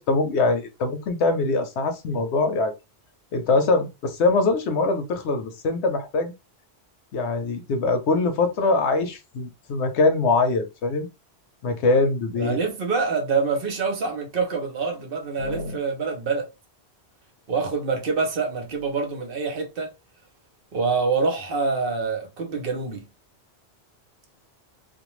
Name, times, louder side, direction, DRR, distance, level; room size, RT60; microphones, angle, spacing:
voice 1, 0.0-2.7 3.3-6.3 7.1-11.1 11.6-12.6 15.4-15.8, left 3 dB, 90° left, 1.0 m, -23 dB
voice 2, 12.4-16.5 17.5-19.9 20.7-23.0, right 4 dB, 60° right, 0.9 m, -26 dB
2.5 x 2.1 x 3.0 m
omnidirectional pair, 1.1 m